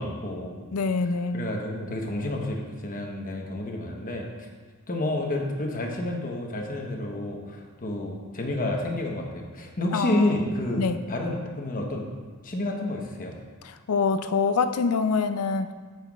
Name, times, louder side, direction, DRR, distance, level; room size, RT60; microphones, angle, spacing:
voice 1, 0.0-0.7 1.3-4.5 4.9-12.1 12.4-13.3, left 1 dB, 40° left, 1 dB, 1.0 m, -30 dB
voice 2, 0.7-1.5 9.9-10.2 10.8-11.0 13.6-15.7, left 4 dB, 80° left, 10 dB, 0.5 m, -25 dB
8.8 x 7.8 x 2.4 m, 1.5 s
head